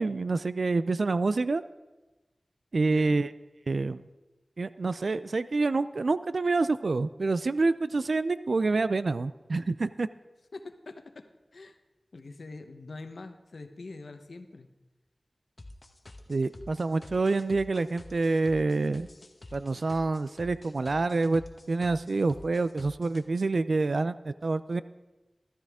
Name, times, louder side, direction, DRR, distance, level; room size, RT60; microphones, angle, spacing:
voice 1, 0.0-1.6 2.7-3.3 3.7-4.0 4.6-10.1 16.3-19.1 19.5-24.8, right 3 dB, 75° right, 15 dB, 0.3 m, -27 dB
voice 2, 2.8-3.2 10.5-11.3 11.5-11.8 12.1-14.7, left 3 dB, 85° left, 8 dB, 0.9 m, -44 dB
sound 1, 15.6-23.2, left 2 dB, 45° left, 1.0 m, -49 dB
14.0 x 13.5 x 3.6 m, 1.1 s
wide cardioid pair, 50°, 0 cm